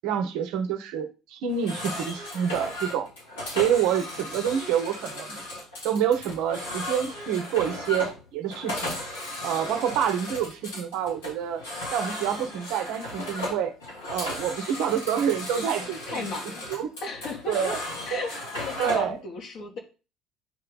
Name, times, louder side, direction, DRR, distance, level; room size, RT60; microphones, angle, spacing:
voice 1, 0.0-3.1 3.5-5.4 5.8-8.9 9.4-11.6 11.9-13.7 14.1-16.2 16.7-16.9 17.5-17.8 18.1-18.2 18.8-19.1, right 9 dB, 70° right, 8 dB, 0.9 m, -27 dB
sound 1, 1.5-19.1, left 1 dB, 85° left, 3.4 m, -36 dB
voice 2, 16.1-16.7 17.0-17.8 18.1-19.8, left 3 dB, 60° left, 1 dB, 1.7 m, -35 dB
9.5 x 3.3 x 3.9 m, 0.32 s
hypercardioid pair, 55°, 0 cm